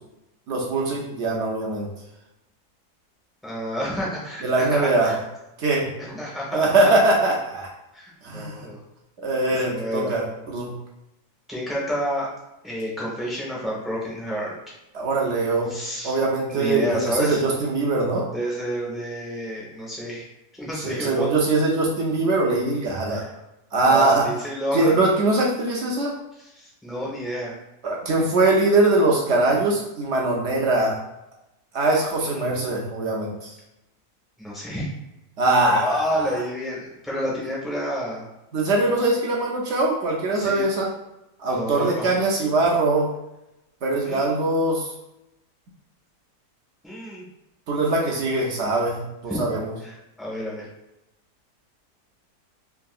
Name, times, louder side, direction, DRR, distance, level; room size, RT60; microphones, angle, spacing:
voice 1, 0.5-1.9 4.4-5.1 5.6-5.9 6.5-7.7 8.2-8.7 9.2-10.7 14.9-15.7 16.0-18.2 20.8-23.3 23.7-24.2 24.7-26.2 27.8-31.0 31.7-33.5 35.4-36.3 38.5-40.9 41.4-43.1 43.8-44.9 47.7-49.7, right 2 dB, 70° right, -2 dB, 0.7 m, -22 dB
voice 2, 3.4-5.2 6.0-6.7 7.9-8.8 9.5-10.2 11.5-12.3 12.6-14.5 15.7-16.2 16.5-17.4 18.3-20.3 20.5-21.3 23.1-23.3 23.8-25.1 26.4-27.5 32.2-32.7 34.4-34.9 35.7-38.2 40.4-40.6 41.5-42.1 44.0-44.4 46.8-47.3 49.3-49.4 49.8-50.7, equal, ahead, -6 dB, 0.4 m, -30 dB
3.5 x 2.7 x 2.3 m, 0.91 s
omnidirectional pair, 1.7 m